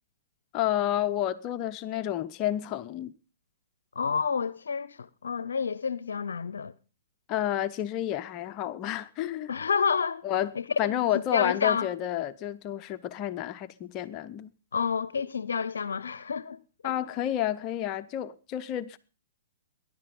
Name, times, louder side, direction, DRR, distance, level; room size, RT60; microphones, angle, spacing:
voice 1, 0.5-3.1 7.3-9.5 10.2-10.5 10.8-14.5 16.8-19.0, left 12 dB, 35° left, 0.8 m, -30 dB
voice 2, 3.9-6.7 9.5-10.2 10.6-11.0 11.3-11.9 14.7-16.9, left 6 dB, 75° left, 0.7 m, -29 dB
20.5 x 11.0 x 5.4 m
hypercardioid pair, 120°, 0 cm